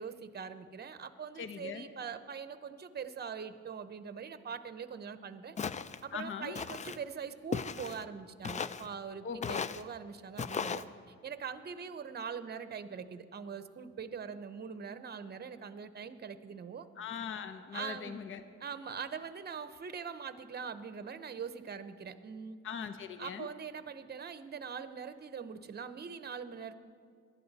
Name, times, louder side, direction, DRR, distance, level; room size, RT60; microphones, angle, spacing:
voice 1, 0.0-5.5 6.0-16.9 17.7-18.2 18.6-22.6 23.2-26.7, right 6 dB, 35° right, 11 dB, 0.8 m, -42 dB
voice 2, 1.4-1.9 6.1-6.6 9.2-9.7 17.0-18.4 22.6-23.5, left 7 dB, 40° left, 9 dB, 0.7 m, -40 dB
Walk footsteps, 5.6-6.0 6.5-7.0 7.5-8.0 8.4-8.9 9.4-9.8 10.4-10.8, left 6 dB, 25° left, 0.4 m, -36 dB
18.5 x 11.5 x 4.1 m, 2.1 s
cardioid pair, 90°, 30 cm